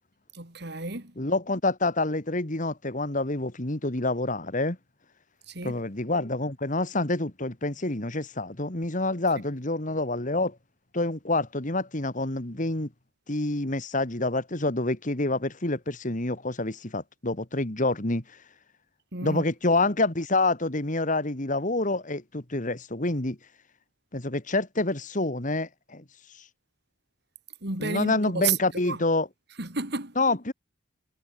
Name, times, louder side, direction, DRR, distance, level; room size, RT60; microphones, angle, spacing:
voice 1, 0.3-1.1 5.5-5.8 19.1-19.4 27.6-29.0 29.6-30.1, right 5 dB, 60° right, 3.7 m, -32 dB
voice 2, 1.2-4.8 5.6-10.6 10.9-12.9 13.3-18.2 19.2-23.4 24.1-26.0 27.8-29.3 30.2-30.5, left 2 dB, 40° left, 2.4 m, -27 dB
head